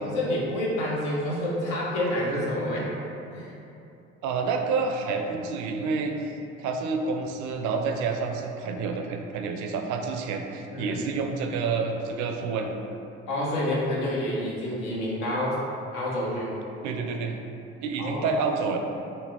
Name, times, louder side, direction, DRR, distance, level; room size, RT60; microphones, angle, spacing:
voice 1, 0.0-2.9 3.3-3.5 10.7-11.0 13.3-15.6 15.9-16.5 18.0-18.4, left 1 dB, 70° left, -5 dB, 0.9 m, -28 dB
voice 2, 4.2-12.8 16.8-17.4 17.8-18.8, right 4 dB, 60° right, 4 dB, 0.5 m, -29 dB
4.0 x 2.0 x 3.5 m, 2.8 s
hypercardioid pair, 55°, 34 cm